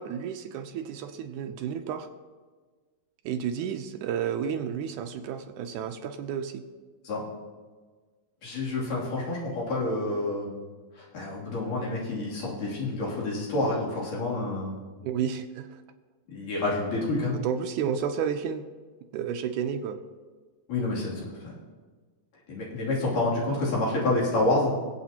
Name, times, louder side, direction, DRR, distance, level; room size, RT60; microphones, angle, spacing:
voice 1, 0.0-2.1 3.3-6.6 15.0-15.8 17.3-18.6 19.1-20.0, right 8 dB, 80° right, 7 dB, 1.9 m, -31 dB
voice 2, 8.4-10.5 11.1-14.7 16.3-17.3 20.7-21.2 22.5-24.7, left 2 dB, 65° left, -5 dB, 4.4 m, -28 dB
24.0 x 8.3 x 2.9 m, 1.4 s
omnidirectional pair, 3.9 m